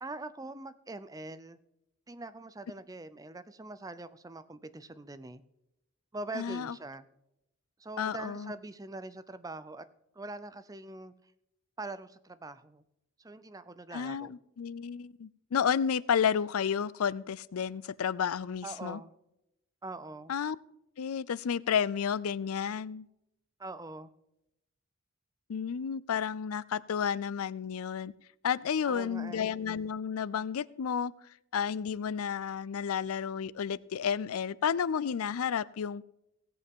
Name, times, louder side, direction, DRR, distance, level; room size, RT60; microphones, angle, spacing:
voice 1, 0.0-1.6 2.1-5.4 6.1-7.1 7.8-9.8 10.2-11.1 11.8-12.8 13.2-14.3 18.6-19.1 19.8-20.3 23.6-24.1 28.8-29.5, right 2 dB, 15° right, 0.5 m, -43 dB
voice 2, 6.3-6.8 8.0-8.5 13.9-19.0 20.3-20.6 21.0-23.1 25.5-28.1 28.4-31.1 31.5-36.1, left 7 dB, 85° left, 0.4 m, -31 dB
17.0 x 8.2 x 3.7 m
head